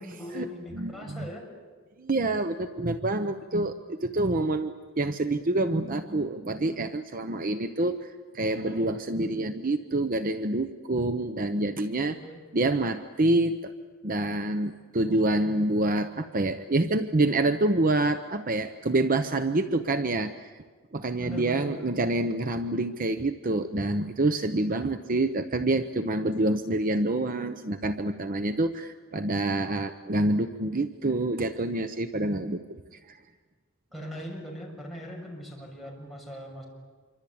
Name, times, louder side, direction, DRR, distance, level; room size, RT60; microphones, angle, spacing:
voice 1, 0.0-1.5 12.0-12.4 21.2-21.9 33.9-36.6, left 1 dB, ahead, -3 dB, 6.7 m, -40 dB
voice 2, 0.7-1.3 2.0-12.2 12.5-13.7 14.0-20.5 20.9-33.2, right 2 dB, 40° right, 9 dB, 0.9 m, -27 dB
27.0 x 24.5 x 8.7 m, 1.4 s
head